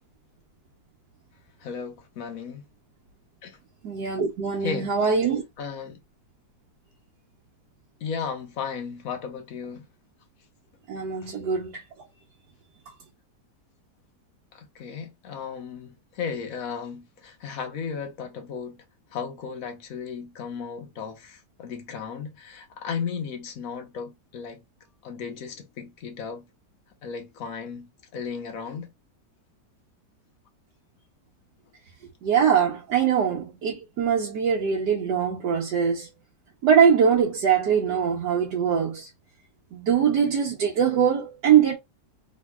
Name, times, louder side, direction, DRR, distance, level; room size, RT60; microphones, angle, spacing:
voice 1, 1.6-2.6 3.4-3.6 4.6-5.1 5.6-6.0 8.0-9.8 11.2-11.3 14.5-18.8 19.1-24.6 25.0-26.4 27.0-28.9, left 6 dB, 60° left, 1.1 m, -35 dB
voice 2, 3.8-5.4 10.9-11.7 32.2-36.1 36.6-39.1 39.7-41.8, right 7 dB, 75° right, 1.3 m, -22 dB
3.5 x 3.0 x 2.2 m
omnidirectional pair, 1.9 m